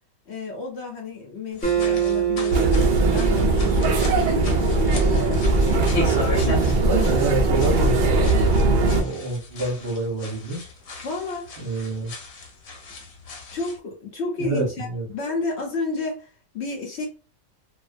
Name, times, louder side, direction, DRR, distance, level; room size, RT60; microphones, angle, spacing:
voice 1, 0.3-5.4 11.0-11.6 13.5-17.1, left 3 dB, 60° left, 0.8 m, -32 dB
sound 1, 1.5-13.8, left 3 dB, 90° left, 1.2 m, -37 dB
Acoustic guitar, 1.6-5.0, right 10 dB, 10° left, 0.7 m, -26 dB
sound 2, 2.5-9.0, right 2 dB, 85° right, 0.4 m, -20 dB
voice 2, 6.8-8.1 8.4-10.7 11.6-12.1 14.4-15.0, right 3 dB, 55° right, 0.8 m, -28 dB
2.5 x 2.1 x 2.5 m
omnidirectional pair, 1.4 m